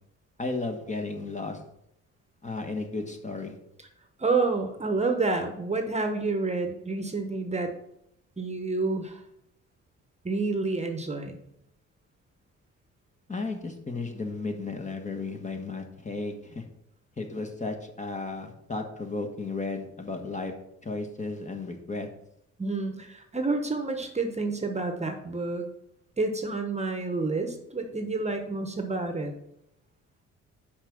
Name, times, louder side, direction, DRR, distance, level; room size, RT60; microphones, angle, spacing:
voice 1, 0.4-1.6 2.4-3.6 13.3-16.7 17.2-20.5 20.8-22.1, left 3 dB, 25° left, 4 dB, 1.2 m, -34 dB
voice 2, 4.2-7.7 8.4-9.2 10.2-11.4 22.6-25.7 26.2-29.3, right 3 dB, 20° right, 5 dB, 1.0 m, -29 dB
5.9 x 5.1 x 5.9 m, 0.76 s
cardioid pair, 90°, 30 cm